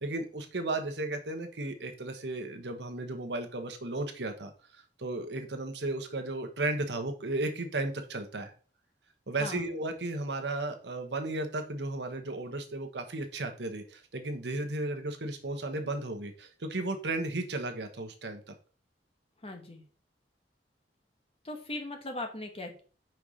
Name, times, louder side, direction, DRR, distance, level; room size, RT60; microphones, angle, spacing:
voice 1, 0.0-8.5 9.3-18.5, right 2 dB, 75° right, 6 dB, 1.1 m, -34 dB
voice 2, 9.4-9.7 19.4-19.8 21.4-22.8, left 2 dB, 35° left, 4 dB, 1.3 m, -39 dB
5.4 x 4.6 x 5.0 m, 0.39 s
head